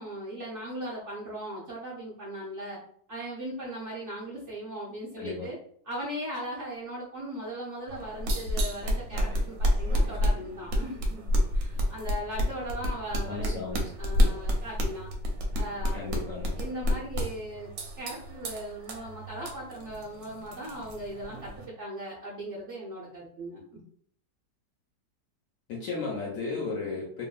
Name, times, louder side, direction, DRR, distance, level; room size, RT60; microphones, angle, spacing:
voice 1, 0.0-2.8 3.1-5.6 5.8-11.3 11.5-13.6 14.0-15.1 15.5-16.0 16.6-17.7 18.0-23.8 26.5-26.7, right 1 dB, 65° right, -6 dB, 0.7 m, -38 dB
voice 2, 5.2-5.5 13.3-13.8 15.9-16.6 25.7-27.3, left 4 dB, 65° left, -3 dB, 0.8 m, -34 dB
sound 1, 7.9-21.7, equal, 90° right, 1.3 m, -29 dB
2.9 x 2.5 x 2.3 m, 0.63 s
omnidirectional pair, 1.9 m